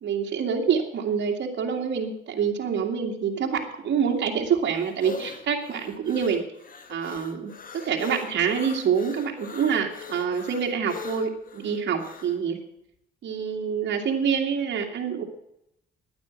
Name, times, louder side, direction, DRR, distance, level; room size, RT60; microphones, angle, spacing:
voice 1, 0.0-6.4 6.9-12.6 13.2-15.2, right 7 dB, 60° right, 1 dB, 2.4 m, -26 dB
sound 1, 4.1-12.4, left 5 dB, 45° left, 1.7 m, -41 dB
11.0 x 9.5 x 8.3 m, 0.78 s
cardioid pair, 90°, 20 cm